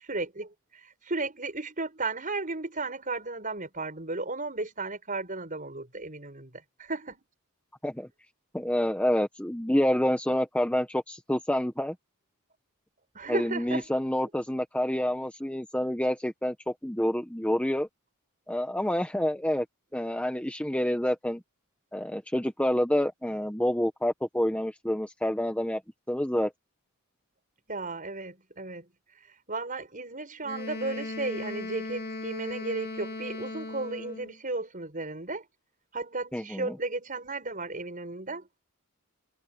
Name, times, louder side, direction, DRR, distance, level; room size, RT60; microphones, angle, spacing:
voice 1, 0.1-7.2 13.1-13.9 27.7-28.9 29.5-35.4 35.9-38.5, right 3 dB, 35° right, 6.2 m, -34 dB
voice 2, 8.5-11.9 13.3-17.9 18.5-19.6 19.9-21.4 21.9-25.8 26.1-26.5 36.3-36.8, left 1 dB, 5° left, 1.0 m, -28 dB
Wind instrument woodwind instrument, 30.4-34.4, left 2 dB, 45° left, 3.0 m, -37 dB
head